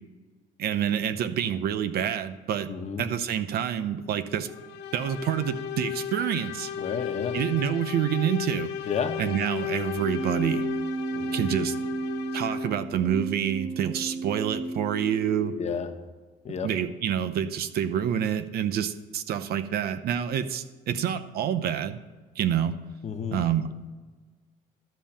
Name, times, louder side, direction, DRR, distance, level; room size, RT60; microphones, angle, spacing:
voice 1, 0.6-2.7 3.0-4.5 4.9-6.7 7.3-8.7 9.2-10.7 11.3-11.8 12.3-15.5 16.6-22.0 22.4-22.7 23.3-23.8, right 9 dB, 65° right, 11 dB, 0.8 m, -27 dB
voice 2, 2.7-3.1 6.8-7.4 8.9-9.2 11.1-11.5 15.6-15.9 16.4-16.7 23.0-23.4, left 6 dB, 40° left, 6 dB, 1.2 m, -31 dB
sound 1, 4.5-12.9, left 8 dB, 85° left, 1.0 m, -35 dB
Keyboard (musical), 10.0-15.9, right 2 dB, 15° right, 1.9 m, -33 dB
12.5 x 5.5 x 8.8 m, 1.3 s
cardioid pair, 110°, 17 cm